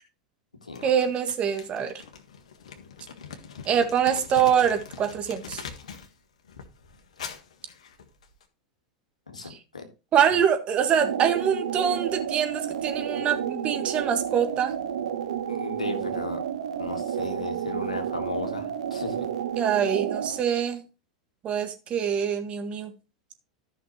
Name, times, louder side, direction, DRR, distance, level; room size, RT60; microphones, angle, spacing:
Crumpling crinkling, 0.7-6.1 6.4-8.4, left 6 dB, 70° left, 1.6 m, -43 dB
voice 1, 0.8-1.9 3.6-5.6 9.5-9.6 10.1-14.7 19.6-20.8 21.4-22.9, right 8 dB, 35° right, 6 dB, 1.8 m, -24 dB
voice 2, 9.3-9.9 15.5-16.4 16.8-19.3, left 3 dB, 85° left, 6 dB, 1.8 m, -35 dB
sound 1, 10.8-20.4, right 9 dB, 70° right, 1.1 m, -31 dB
14.0 x 5.8 x 3.1 m, 0.31 s
figure-of-eight pair, 90°, 4 cm